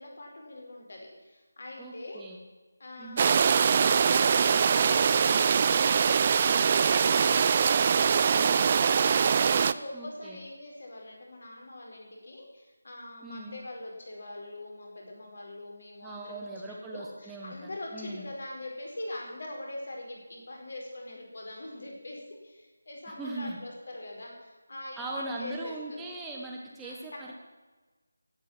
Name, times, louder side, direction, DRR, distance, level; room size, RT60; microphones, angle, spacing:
voice 1, 0.0-2.2 2.8-7.6 8.1-26.0 26.8-27.0, left 1 dB, 50° left, 0 dB, 4.8 m, -43 dB
voice 2, 1.8-2.4 3.0-3.3 8.4-8.6 9.9-10.4 13.2-13.6 16.0-18.3 23.1-23.6 24.9-27.3, right 2 dB, 5° right, -2 dB, 1.1 m, -40 dB
sound 1, 3.2-9.7, right 6 dB, 30° right, 0.4 m, -23 dB
15.5 x 9.1 x 7.4 m, 1.2 s
figure-of-eight pair, 160°, 0 cm